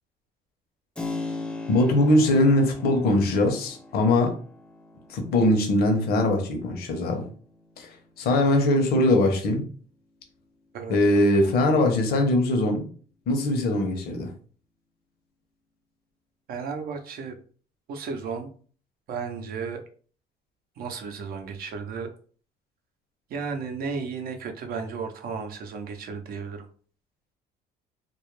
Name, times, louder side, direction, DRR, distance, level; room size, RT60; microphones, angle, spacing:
Keyboard (musical), 0.9-9.5, left 3 dB, 5° left, 0.3 m, -40 dB
voice 1, 1.7-4.4 5.1-7.3 7.8-9.7 10.9-12.9 13.3-14.3, left 1 dB, 65° left, 0.7 m, -21 dB
voice 2, 10.7-11.5 16.5-17.4 17.9-18.5 19.1-19.8 20.8-22.1 23.3-26.7, right 5 dB, 60° right, 0.6 m, -34 dB
2.3 x 2.1 x 3.1 m
cardioid pair, 110°, 17 cm